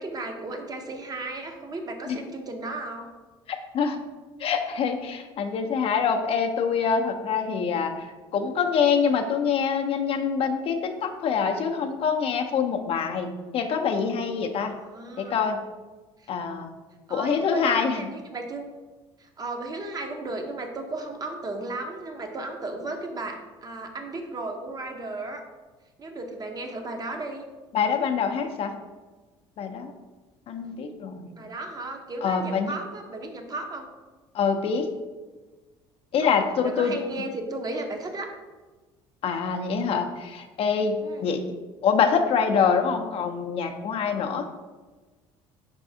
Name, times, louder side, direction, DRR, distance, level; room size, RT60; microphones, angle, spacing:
voice 1, 0.0-3.1 14.7-15.6 16.2-16.3 17.1-18.7 19.2-25.4 26.0-27.5 31.3-33.9 36.2-38.3 41.0-41.3, right 2 dB, 30° right, 4 dB, 0.6 m, -35 dB
voice 2, 3.5-4.0 4.4-8.1 8.3-14.7 15.2-15.6 16.3-16.7 17.1-18.0 27.7-28.7 29.6-29.9 30.5-31.3 32.2-32.7 34.3-34.9 36.1-37.0 39.2-41.0 41.2-41.4 41.8-44.5, left 6 dB, 50° left, 5 dB, 0.5 m, -25 dB
4.6 x 3.4 x 2.6 m, 1.3 s
supercardioid pair, 75°, 12 cm